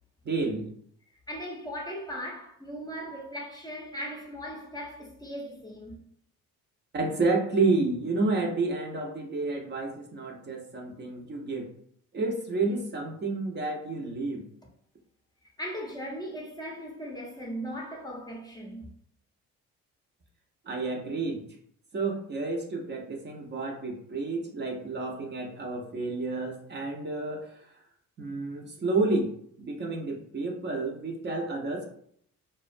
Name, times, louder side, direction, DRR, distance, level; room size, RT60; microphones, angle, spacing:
voice 1, 0.2-0.7 6.9-11.7 12.1-14.4 20.7-21.4 21.9-27.6 28.2-29.3 29.6-31.8, right 3 dB, 35° right, 0.5 m, -30 dB
voice 2, 1.3-6.0 15.4-18.9, equal, 15° left, 0.5 m, -38 dB
2.3 x 2.1 x 2.5 m
cardioid pair, 90°, 30 cm